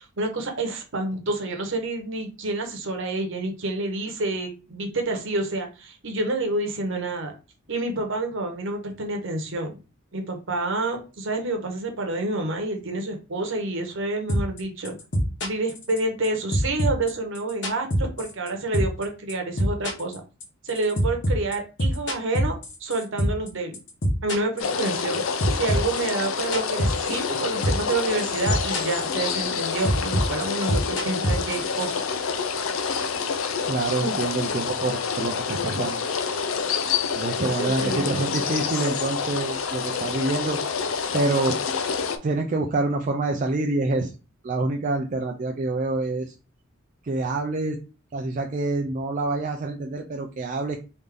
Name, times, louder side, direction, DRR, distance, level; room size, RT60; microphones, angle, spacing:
voice 1, 0.0-7.3 7.7-9.7 10.1-14.9 15.4-20.2 20.6-22.5 22.8-23.8 24.2-25.2 25.5-32.0 34.0-34.2 37.4-38.4, right 2 dB, 65° right, 4 dB, 1.0 m, -28 dB
sound 1, 14.3-14.6 14.8-16.3 16.5-18.5 18.7-19.0 19.3-23.5 23.7-25.1 25.4-27.4 27.6-27.9 28.2-29.0 29.3-31.9, equal, 60° left, 1.2 m, -24 dB
sound 2, 24.6-42.2, left 6 dB, 75° left, 0.5 m, -28 dB
voice 2, 33.7-36.0 36.4-36.5 37.1-40.6 41.1-41.6 42.2-44.1 44.4-46.3 47.0-47.8 48.1-50.8, right 2 dB, 40° right, 1 dB, 0.4 m, -26 dB
3.3 x 2.7 x 3.6 m, 0.32 s
head